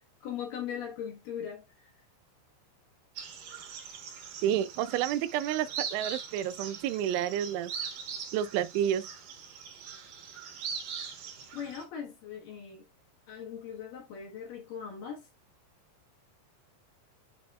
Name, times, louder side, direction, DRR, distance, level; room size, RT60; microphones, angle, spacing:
voice 1, 0.0-1.9 11.5-12.8 13.3-15.3, left 8 dB, 60° left, 2.6 m, -40 dB
sound 1, 3.2-11.8, right 7 dB, 60° right, 2.7 m, -41 dB
voice 2, 4.4-7.7 8.3-9.0, right 10 dB, 85° right, 3.0 m, -30 dB
10.0 x 4.1 x 2.4 m
omnidirectional pair, 5.3 m